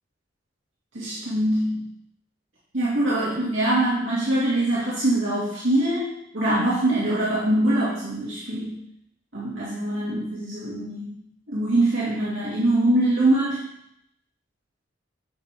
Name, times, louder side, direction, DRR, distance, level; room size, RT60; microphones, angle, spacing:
voice 1, 0.9-1.8 2.7-8.7 9.3-11.1 11.5-13.7, right 1 dB, 85° right, -8 dB, 2.5 m, -23 dB
8.8 x 7.3 x 3.7 m, 0.77 s
head